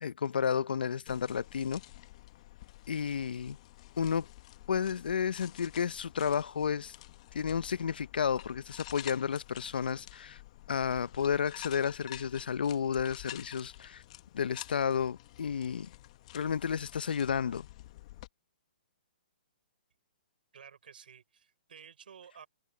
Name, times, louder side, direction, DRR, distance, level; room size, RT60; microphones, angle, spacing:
voice 1, 0.0-1.8 2.9-3.6 4.0-4.3 4.7-6.9 7.3-10.4 10.7-14.0 14.3-15.9 16.3-17.7, left 7 dB, 75° left, 0.7 m, -32 dB
sound 1, 1.1-18.3, left 16 dB, 45° left, 1.2 m, -50 dB
voice 2, 20.5-22.5, right 7 dB, 75° right, 4.2 m, -53 dB
hypercardioid pair, 145°, 5 cm